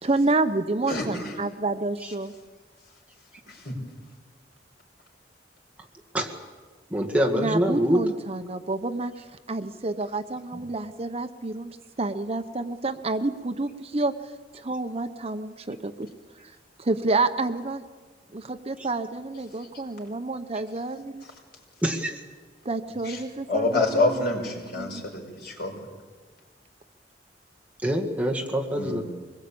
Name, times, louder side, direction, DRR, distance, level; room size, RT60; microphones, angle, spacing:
voice 1, 0.0-2.3 7.4-9.1 9.5-11.7 12.0-14.1 14.6-15.9 16.8-17.8 18.3-21.2 22.6-24.2 24.8-25.0, right 2 dB, 35° right, 9 dB, 0.9 m, -28 dB
voice 2, 0.9-1.4 3.5-3.8 23.0-23.2 23.5-25.7 28.8-29.0, left 2 dB, 60° left, 1 dB, 5.5 m, -27 dB
voice 3, 6.9-8.0 10.5-10.6 21.8-22.2 27.8-29.0, equal, 10° right, 0 dB, 1.9 m, -25 dB
24.5 x 21.0 x 8.7 m, 1.4 s
head